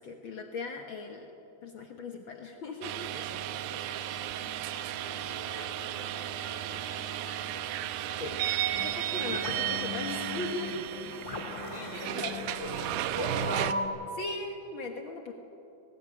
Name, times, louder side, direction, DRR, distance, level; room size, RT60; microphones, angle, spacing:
voice 1, 0.0-1.3 1.6-3.0 8.2-8.4 8.8-10.9 12.2-12.3 14.1-15.3, left 3 dB, 75° left, 3 dB, 1.1 m, -38 dB
sound 1, 2.8-13.7, right 12 dB, 85° right, 2.4 m, -34 dB
voice 2, 3.1-7.4 11.7-13.0, equal, 30° right, -1 dB, 2.3 m, -48 dB
sound 2, 4.1-13.9, left 3 dB, 55° left, 2.0 m, -50 dB
sound 3, 8.7-13.9, left 1 dB, 15° left, 1.0 m, -37 dB
18.5 x 18.5 x 8.8 m, 2.8 s
omnidirectional pair, 4.2 m